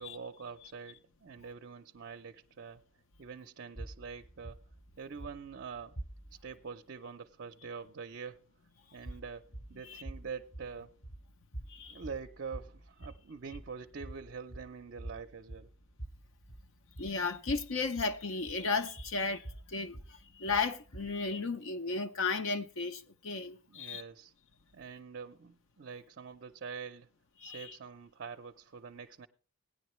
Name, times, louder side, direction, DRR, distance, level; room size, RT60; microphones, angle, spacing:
voice 1, 0.0-2.8 3.2-4.6 5.0-6.0 6.3-8.5 8.9-11.0 11.9-15.7 23.7-24.3 24.7-27.1 27.4-29.3, right 5 dB, 50° right, 0.5 m, -45 dB
sound 1, 3.8-6.6 9.0-21.3, right 1 dB, 30° left, 0.8 m, -47 dB
voice 2, 17.0-24.0 27.4-27.8, left 4 dB, 65° left, 0.7 m, -34 dB
17.0 x 10.0 x 3.1 m
head